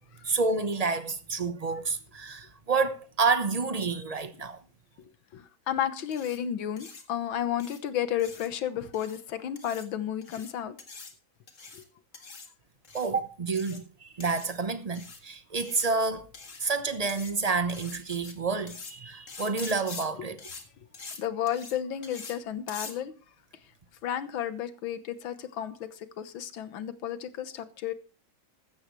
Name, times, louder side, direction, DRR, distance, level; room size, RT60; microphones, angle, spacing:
voice 1, 0.2-4.6 12.9-16.3 16.6-20.5, right 4 dB, 30° right, 0.7 m, -29 dB
voice 2, 5.3-10.8 11.7-11.8 21.2-23.1 24.0-27.9, left 10 dB, 75° left, 1.8 m, -32 dB
sound 1, 6.1-6.4 6.8-7.0 7.6-7.8 8.2-8.5 8.9-9.2 9.6-9.8 10.2-10.5 10.8-11.1 11.5-11.8 12.1-12.5 12.8-13.1 13.5-13.8 14.2-14.5 14.9-15.2 15.6-15.9 16.3-16.7 17.1-17.3 17.7-18.3 18.7-18.9 19.3-20.0 20.4-20.6 20.9-21.2 21.5-21.7 22.0-22.3 22.7-22.9, left 4 dB, 40° left, 2.0 m, -44 dB
15.0 x 13.0 x 3.2 m
omnidirectional pair, 2.2 m